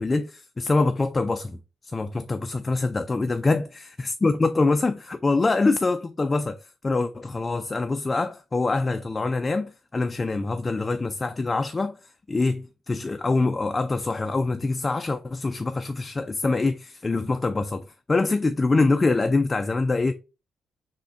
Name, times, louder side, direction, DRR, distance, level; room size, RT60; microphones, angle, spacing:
voice 1, 0.0-1.6 1.8-3.6 4.0-20.1, left 3 dB, 25° left, 0.3 m, -24 dB
3.4 x 2.1 x 3.7 m
cardioid pair, 85°, 0 cm